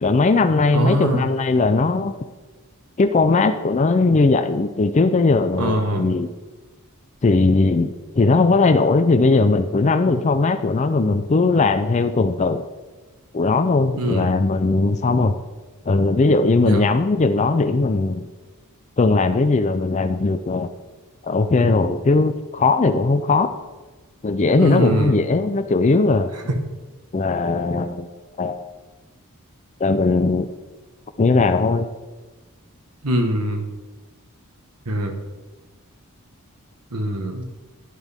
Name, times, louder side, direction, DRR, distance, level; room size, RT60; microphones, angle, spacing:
voice 1, 0.0-2.1 3.0-6.3 7.2-12.6 13.3-15.4 15.9-18.3 19.0-20.7 21.2-23.5 24.2-26.3 27.1-28.1 28.4-28.6 29.8-30.5 31.2-31.9, left 3 dB, 30° left, 8 dB, 0.4 m, -19 dB
voice 2, 0.7-1.3 5.6-6.1 14.0-14.3 16.6-16.9 24.6-25.2 33.0-33.6 34.8-35.1 36.9-37.5, right 1 dB, 90° right, 5 dB, 1.5 m, -22 dB
11.0 x 9.9 x 3.6 m, 1.2 s
head